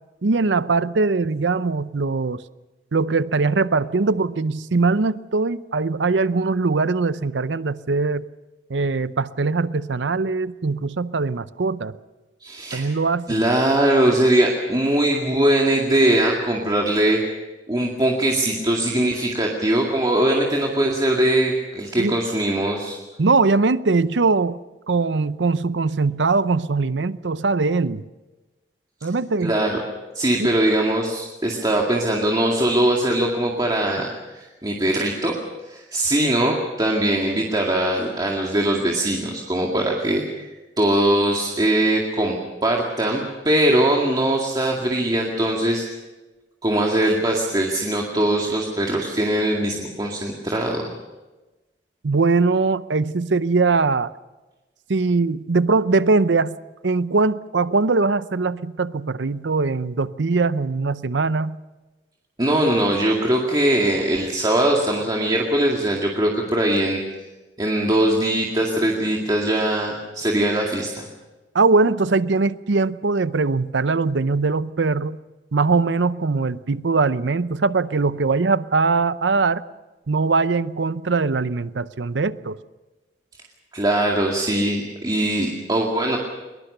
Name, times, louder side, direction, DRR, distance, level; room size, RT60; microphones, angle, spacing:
voice 1, 0.2-2.4 2.9-8.2 8.7-11.9 12.7-13.5 22.0-22.2 23.2-24.6 24.9-28.0 29.0-29.5 30.4-30.5 52.0-54.1 54.9-56.6 56.8-61.6 71.5-75.2 75.5-79.6 80.1-82.6, right 3 dB, 75° right, 15 dB, 0.7 m, -21 dB
voice 2, 12.4-12.9 13.3-17.2 17.7-23.0 29.0-29.1 29.4-29.8 30.1-35.3 35.7-45.8 46.6-50.9 62.4-67.0 67.6-71.1 83.7-86.2, right 1 dB, 25° right, -1 dB, 2.2 m, -21 dB
22.0 x 21.0 x 6.7 m, 1.1 s
head